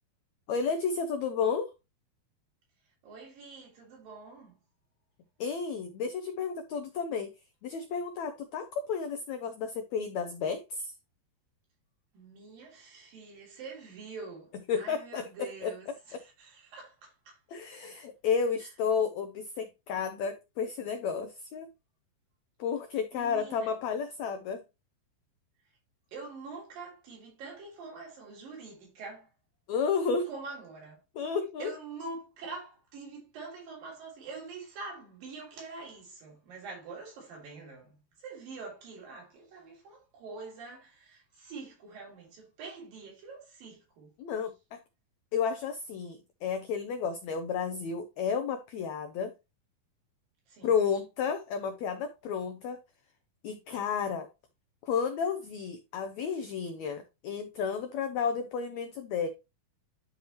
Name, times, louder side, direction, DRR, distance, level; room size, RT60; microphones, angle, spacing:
voice 1, 0.5-1.7 5.4-7.3 7.6-10.9 14.7-15.2 15.6-15.7 17.5-21.7 22.6-24.6 29.7-30.3 31.2-31.7 44.2-44.8 45.3-49.3 50.6-52.8 53.4-54.3 54.8-59.3, left 6 dB, 90° left, 1.5 m, -32 dB
voice 2, 3.0-4.5 12.1-17.4 18.6-18.7 23.1-23.7 26.1-29.3 30.2-31.0 31.6-44.1 50.5-50.7, right 4 dB, 70° right, 4.8 m, -45 dB
11.0 x 4.7 x 3.0 m
omnidirectional pair, 4.2 m